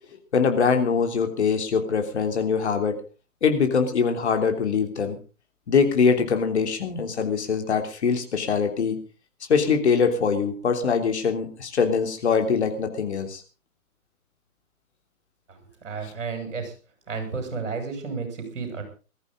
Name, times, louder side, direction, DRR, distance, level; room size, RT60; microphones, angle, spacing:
voice 1, 0.3-3.0 3.4-5.2 5.7-9.0 9.5-13.4, left 5 dB, 50° left, 5 dB, 3.3 m, -23 dB
voice 2, 15.5-16.7 17.1-18.8, right 5 dB, 55° right, 5 dB, 7.3 m, -32 dB
21.0 x 14.0 x 3.9 m, 0.35 s
figure-of-eight pair, 130°, 44 cm